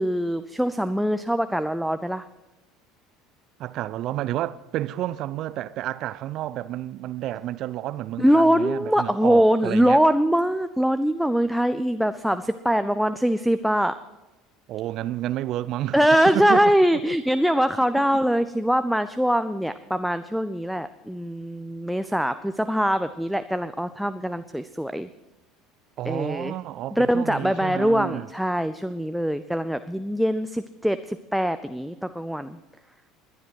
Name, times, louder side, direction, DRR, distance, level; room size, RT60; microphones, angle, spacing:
voice 1, 0.0-2.3 8.2-14.0 15.9-25.1 26.0-26.5 26.9-32.6, equal, ahead, 0.5 m, -23 dB
voice 2, 3.6-10.0 14.7-16.1 16.3-16.6 17.1-17.2 26.0-28.3, right 13 dB, 50° right, 0.5 m, -30 dB
20.5 x 10.5 x 4.8 m
figure-of-eight pair, 65°, 0 cm